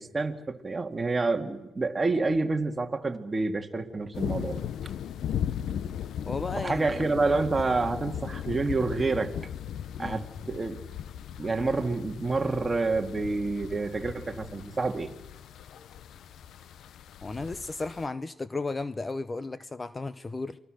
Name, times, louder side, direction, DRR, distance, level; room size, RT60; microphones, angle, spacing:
voice 1, 0.0-4.6 6.6-9.3 10.0-10.8 11.4-15.1, right 3 dB, 25° right, 5 dB, 2.2 m, -28 dB
sound 1, 4.1-18.1, left 9 dB, 70° left, 0.8 m, -37 dB
voice 2, 6.3-7.2 10.0-10.3 17.2-20.6, left 3 dB, 25° left, 14 dB, 0.8 m, -34 dB
28.5 x 22.0 x 6.5 m, 1.0 s
cardioid pair, 90°, 0 cm